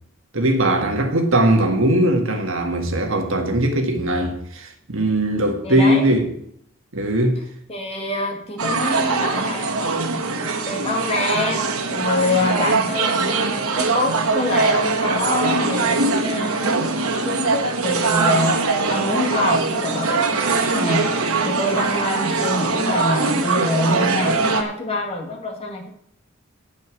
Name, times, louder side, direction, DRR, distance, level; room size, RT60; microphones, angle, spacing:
voice 1, 0.3-6.3 6.9-7.4, right 1 dB, 65° right, 1.7 m, -20 dB
voice 2, 5.6-6.1 7.7-10.0 10.7-13.5 13.7-16.8 17.1-18.6 18.9-25.9, left 2 dB, 25° left, 2.0 m, -25 dB
sound 1, 8.6-24.6, right 4 dB, 90° right, 1.5 m, -22 dB
9.5 x 9.3 x 6.2 m
head